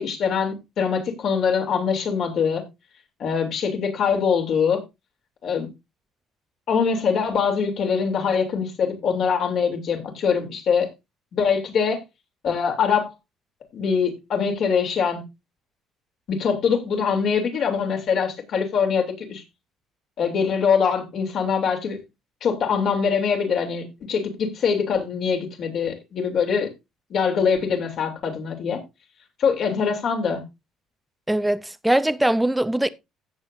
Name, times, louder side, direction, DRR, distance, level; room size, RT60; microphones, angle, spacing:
voice 1, 0.0-2.6 3.2-4.8 5.4-5.7 6.7-10.9 11.3-12.0 12.4-13.1 13.7-15.2 16.3-19.4 20.2-22.0 22.4-26.7 27.1-28.8 29.4-30.4, left 6 dB, 50° left, 3.0 m, -23 dB
voice 2, 31.3-32.9, right 1 dB, 5° right, 0.6 m, -21 dB
16.0 x 7.2 x 2.6 m
cardioid pair, 140°, 0 cm